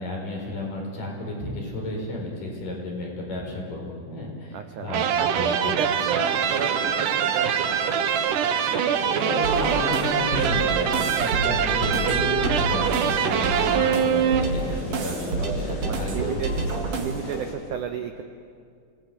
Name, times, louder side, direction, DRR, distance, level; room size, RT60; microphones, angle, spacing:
voice 1, 0.0-5.8 9.0-16.7, left 2 dB, 50° left, -1 dB, 6.4 m, -33 dB
voice 2, 4.5-4.9 5.2-7.8 15.9-16.5 16.9-18.2, right 8 dB, 85° right, 7 dB, 1.8 m, -32 dB
sound 1, 4.9-14.9, right 8 dB, 65° right, 2.2 m, -24 dB
sound 2, 6.0-17.5, left 1 dB, 30° left, 4.7 m, -36 dB
sound 3, 9.4-17.4, right 3 dB, 45° right, 2.4 m, -29 dB
27.0 x 18.5 x 9.2 m, 2.3 s
omnidirectional pair, 4.8 m